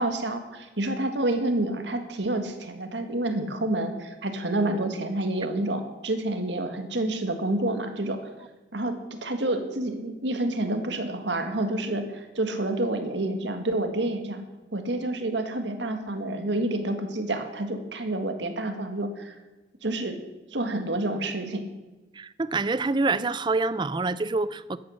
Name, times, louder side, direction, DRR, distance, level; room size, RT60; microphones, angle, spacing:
voice 1, 0.0-8.2 8.7-14.4 14.7-19.3 19.8-20.2 20.5-21.6, right 1 dB, 75° right, 7 dB, 1.7 m, -28 dB
voice 2, 22.2-24.8, right 3 dB, 25° right, 16 dB, 0.4 m, -26 dB
14.0 x 10.5 x 6.4 m, 1.1 s
head